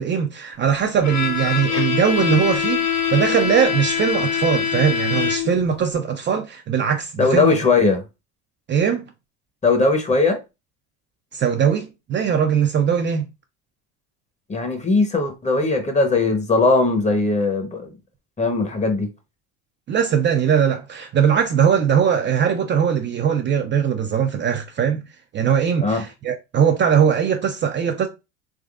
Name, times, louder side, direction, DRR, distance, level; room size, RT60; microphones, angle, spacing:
voice 1, 0.0-7.6 8.7-9.1 11.3-13.2 19.9-25.0 25.3-28.1, right 7 dB, 35° right, 0.4 m, -20 dB
Bowed string instrument, 1.0-5.7, left 7 dB, 60° left, 1.0 m, -23 dB
voice 2, 7.2-8.0 9.6-10.4 14.5-17.9 18.4-19.1 25.8-26.0, left 3 dB, 20° left, 0.9 m, -19 dB
3.5 x 3.1 x 2.4 m
supercardioid pair, 100°, 35 cm